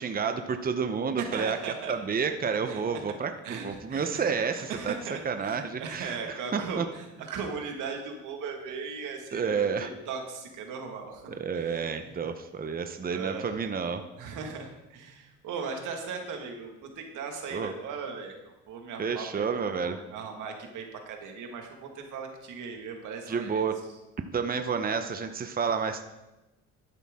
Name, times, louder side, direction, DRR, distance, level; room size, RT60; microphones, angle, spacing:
voice 1, 0.0-1.6 1.9-4.9 5.2-6.2 6.5-6.9 9.3-9.9 11.3-14.0 17.5-17.7 19.0-20.0 23.3-23.7 24.3-26.0, right 6 dB, 30° right, 7 dB, 0.8 m, -30 dB
voice 2, 1.2-1.9 2.7-2.8 3.1-3.2 3.4-12.2 13.1-13.6 14.2-19.4 19.8-23.7, right 5 dB, 85° right, 3 dB, 1.9 m, -38 dB
12.0 x 9.9 x 3.7 m, 1.0 s
cardioid pair, 90°, 30 cm